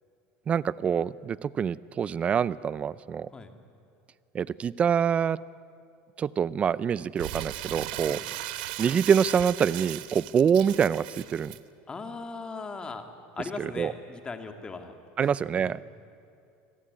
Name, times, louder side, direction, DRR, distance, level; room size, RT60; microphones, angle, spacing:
voice 1, 0.5-3.3 4.3-5.4 6.2-8.2 8.8-11.5 13.6-13.9 15.2-15.8, right 7 dB, 25° right, 20 dB, 0.5 m, -25 dB
Crumpling crinkling, 7.2-11.6, right 15 dB, 90° right, 1.1 m, -37 dB
voice 2, 11.9-13.1 13.4-15.0 15.2-15.8, left 4 dB, 20° left, 6 dB, 2.4 m, -39 dB
28.0 x 20.5 x 9.8 m, 2.6 s
supercardioid pair, 135°, 5 cm